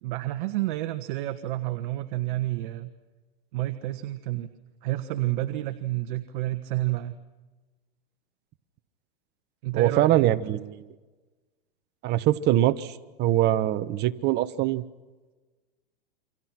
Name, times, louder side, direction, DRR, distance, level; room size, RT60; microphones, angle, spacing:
voice 1, 0.0-2.9 3.5-4.5 4.8-7.2 9.6-10.4, right 16 dB, 55° right, 9 dB, 1.4 m, -30 dB
voice 2, 9.7-10.9 12.0-14.8, right 13 dB, 35° right, 11 dB, 1.3 m, -23 dB
29.0 x 25.0 x 6.1 m, 1.2 s
supercardioid pair, 135°, 29 cm